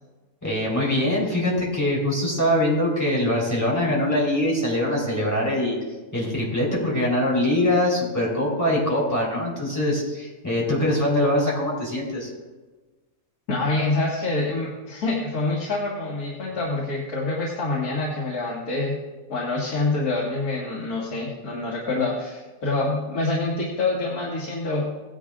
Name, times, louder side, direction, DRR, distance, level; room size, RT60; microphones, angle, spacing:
voice 1, 0.4-5.8 6.1-12.3, left 1 dB, 10° left, -5 dB, 3.7 m, -23 dB
voice 2, 13.5-19.0 19.3-24.9, left 2 dB, 85° left, -4 dB, 2.3 m, -26 dB
16.5 x 10.5 x 2.5 m, 1.3 s
omnidirectional pair, 1.6 m